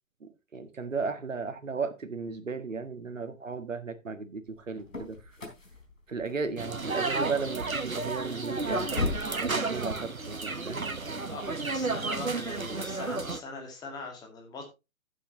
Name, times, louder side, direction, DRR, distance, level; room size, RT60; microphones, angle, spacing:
voice 1, 0.2-5.2 6.1-8.9 9.4-10.8, right 4 dB, 70° right, 1.7 m, -35 dB
sound 1, 4.5-9.4, left 3 dB, 70° left, 3.6 m, -38 dB
sound 2, 6.6-13.4, right 3 dB, 85° right, 1.2 m, -32 dB
voice 2, 11.3-14.6, left 3 dB, 10° left, 2.0 m, -41 dB
11.5 x 9.0 x 2.9 m
figure-of-eight pair, 130°, 40 cm